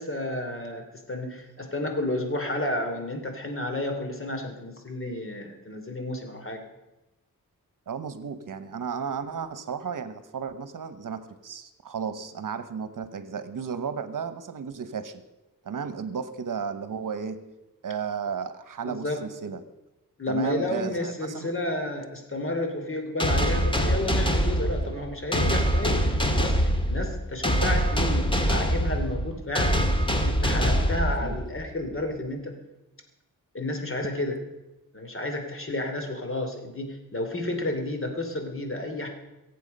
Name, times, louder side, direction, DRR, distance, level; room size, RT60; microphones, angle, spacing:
voice 1, 0.0-6.6 18.8-19.2 20.2-29.8 30.2-32.5 33.5-34.4 34.9-39.1, left 1 dB, 40° left, 4 dB, 3.0 m, -31 dB
voice 2, 7.9-15.2 15.6-17.4 17.8-19.6 20.3-21.5 29.3-29.4 31.2-31.3, right 6 dB, 65° right, 12 dB, 1.1 m, -34 dB
sound 1, 23.2-31.7, equal, 15° left, 1.9 m, -24 dB
23.0 x 8.2 x 5.4 m, 0.98 s
cardioid pair, 80°, 34 cm